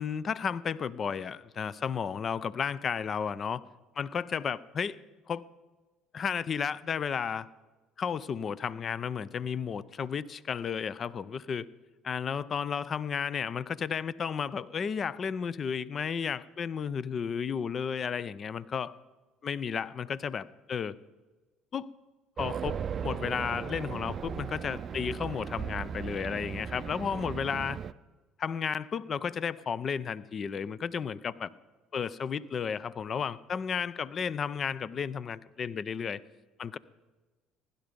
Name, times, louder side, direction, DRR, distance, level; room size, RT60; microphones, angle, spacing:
voice 1, 0.0-3.6 4.0-5.0 5.3-5.4 6.1-7.5 8.0-11.7 12.0-18.9 19.4-21.0 21.7-21.9 22.4-27.8 28.4-31.5 31.9-36.2 36.6-36.8, left 6 dB, 45° left, 19 dB, 0.5 m, -33 dB
Race car auto racing, 22.4-27.9, right 7 dB, 45° right, 0.4 m, -37 dB
16.0 x 11.5 x 5.2 m, 1.2 s
supercardioid pair, 75°, 0 cm